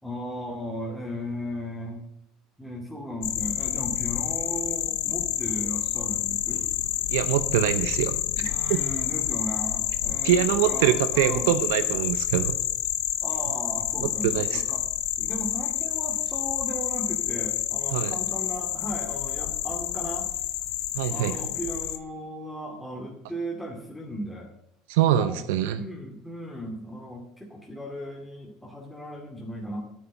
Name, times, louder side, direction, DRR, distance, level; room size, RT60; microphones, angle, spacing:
voice 1, 0.0-2.0 2.6-6.7 8.3-11.5 13.2-14.8 15.2-20.3 21.1-24.5 25.0-25.4 25.7-29.8, equal, 5° left, -2 dB, 2.3 m, -36 dB
sound 1, 3.2-22.0, left 13 dB, 75° left, 0.8 m, -29 dB
voice 2, 7.1-8.2 8.7-8.8 10.2-12.6 14.2-14.6 17.9-18.1 20.9-21.4 24.9-25.8, right 11 dB, 75° right, 11 dB, 0.7 m, -24 dB
9.2 x 6.8 x 8.1 m, 0.78 s
hypercardioid pair, 85°, 0 cm